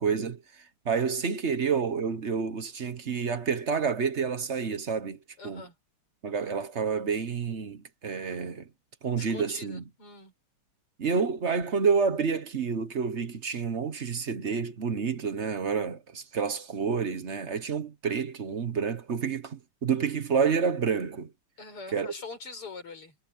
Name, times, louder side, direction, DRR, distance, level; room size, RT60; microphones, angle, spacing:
voice 1, 0.0-5.2 5.4-5.6 6.2-8.7 9.0-9.8 11.0-21.3 21.9-22.1, right 6 dB, 40° right, 1.0 m, -29 dB
voice 2, 5.4-5.7 9.2-10.3 21.6-23.2, left 4 dB, 85° left, 6.4 m, -43 dB
omnidirectional pair, 2.4 m